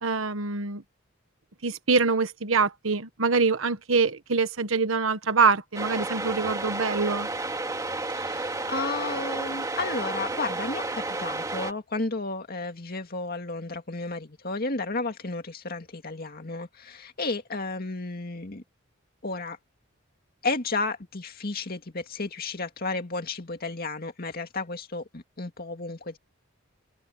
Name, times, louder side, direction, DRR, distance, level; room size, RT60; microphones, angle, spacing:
voice 1, 0.0-0.8 1.6-7.3, right 4 dB, 85° right, 1.3 m, -24 dB
sound 1, 5.7-11.7, right 2 dB, 15° right, 2.3 m, -31 dB
voice 2, 8.1-18.6 19.2-19.6 20.4-26.2, left 3 dB, 50° left, 2.2 m, -33 dB
open air
head